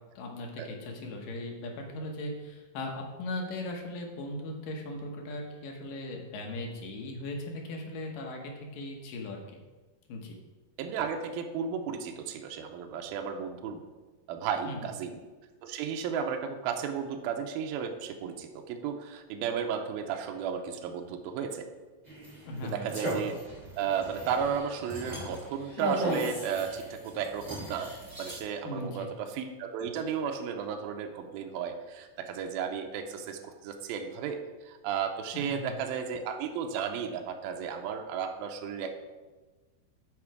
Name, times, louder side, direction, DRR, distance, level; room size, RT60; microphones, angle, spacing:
voice 1, 0.2-9.6 10.1-10.4 14.7-14.9 22.5-22.9 28.6-29.1 35.3-35.7, left 1 dB, 70° left, 1 dB, 2.5 m, -38 dB
voice 2, 10.8-13.8 14.3-15.2 15.6-21.7 22.6-23.4 23.8-38.9, right 7 dB, 80° right, 5 dB, 2.4 m, -34 dB
sound 1, 22.0-28.4, right 1 dB, 15° right, 2.0 m, -37 dB
8.6 x 5.2 x 4.7 m, 1.2 s
omnidirectional pair, 4.5 m